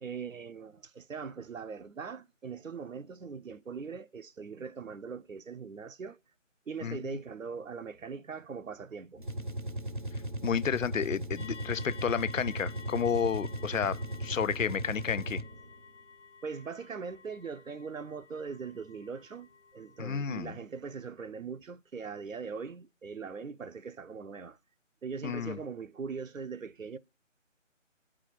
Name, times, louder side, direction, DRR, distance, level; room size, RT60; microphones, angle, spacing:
voice 1, 0.0-6.2 6.7-9.2 16.4-24.6 25.0-27.0, right 5 dB, 85° right, 0.8 m, -41 dB
sound 1, 9.2-15.7, right 1 dB, 40° right, 0.6 m, -37 dB
voice 2, 10.4-15.4 20.0-20.6 25.2-25.6, left 7 dB, 80° left, 0.6 m, -31 dB
sound 2, 11.4-20.0, left 6 dB, 65° left, 1.3 m, -52 dB
8.3 x 4.9 x 7.5 m
figure-of-eight pair, 170°, 39 cm